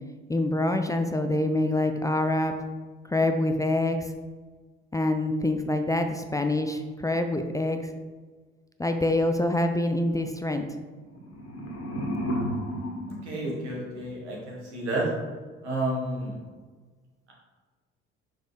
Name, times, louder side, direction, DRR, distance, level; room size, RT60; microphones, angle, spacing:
voice 1, 0.3-2.5 3.1-4.1 4.9-7.9 8.8-10.6, left 1 dB, 10° left, 6 dB, 0.4 m, -25 dB
sound 1, 11.0-14.1, equal, 40° left, 1.7 m, -33 dB
voice 2, 13.2-15.0 15.6-16.3, right 1 dB, 85° right, -3 dB, 1.6 m, -31 dB
6.2 x 4.9 x 3.4 m, 1.4 s
figure-of-eight pair, 55°, 34 cm